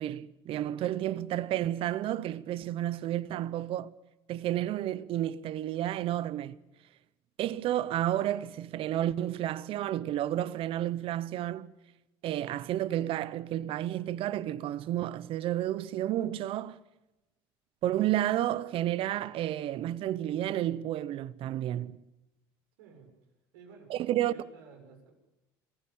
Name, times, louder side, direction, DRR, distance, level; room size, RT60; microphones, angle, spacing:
voice 1, 0.0-3.9 4.3-6.6 7.4-11.7 12.2-16.8 17.8-22.0 23.9-24.3, right 12 dB, 55° right, 1.0 m, -31 dB
voice 2, 22.8-23.1 23.5-25.1, right 5 dB, 85° right, 7.0 m, -53 dB
26.5 x 16.0 x 8.8 m
supercardioid pair, 90°, 11 cm